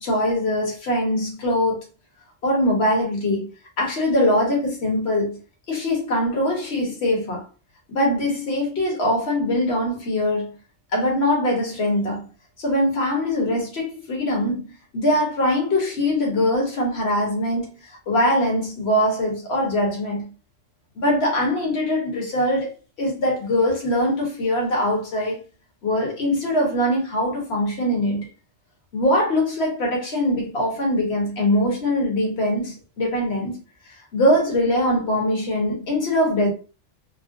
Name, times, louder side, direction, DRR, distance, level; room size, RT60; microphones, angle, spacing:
voice 1, 0.0-1.8 2.4-3.5 3.8-5.4 5.7-7.4 7.9-10.5 10.9-12.3 12.6-20.3 21.0-22.7 23.0-25.4 25.8-28.3 28.9-33.6 34.1-36.5, left 1 dB, 55° left, 1.3 m, -22 dB
3.7 x 2.0 x 2.5 m
omnidirectional pair, 1.3 m